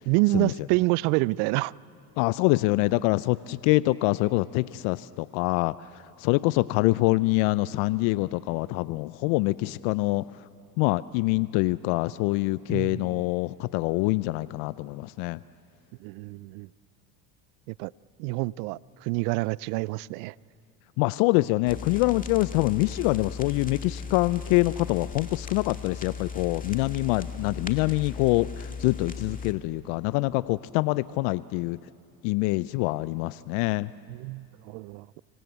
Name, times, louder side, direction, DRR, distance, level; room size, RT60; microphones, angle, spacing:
voice 1, 0.1-1.7 12.7-13.2 16.0-16.7 17.7-17.9 18.2-20.3 34.1-35.2, right 22 dB, 75° right, 23 dB, 0.6 m, -27 dB
voice 2, 2.2-10.3 10.8-15.4 21.0-31.8 32.2-33.9, left 21 dB, 70° left, 18 dB, 0.6 m, -25 dB
sound 1, 21.7-29.5, left 5 dB, 15° left, 2.1 m, -37 dB
26.0 x 24.5 x 8.0 m, 2.6 s
hypercardioid pair, 80°, 49 cm